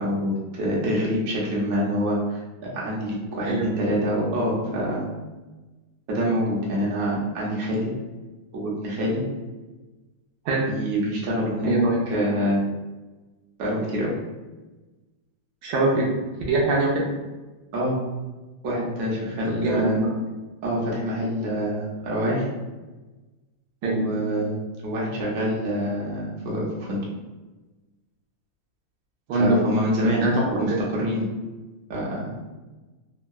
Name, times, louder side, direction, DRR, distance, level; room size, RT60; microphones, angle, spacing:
voice 1, 0.0-5.0 6.1-7.9 8.5-9.2 10.7-11.7 12.1-12.6 13.6-14.1 17.7-18.0 18.6-20.0 20.6-22.5 23.8-24.6 24.8-27.0 29.3-30.2 30.5-31.2 31.9-32.2, equal, 60° right, -5 dB, 1.0 m, -26 dB
voice 2, 11.6-12.0 15.6-16.1 16.5-17.0 19.6-20.1 23.8-24.0 29.3-29.6 30.0-30.8, right 2 dB, 75° right, -2 dB, 1.2 m, -22 dB
3.6 x 2.2 x 2.3 m, 1.2 s
omnidirectional pair, 2.1 m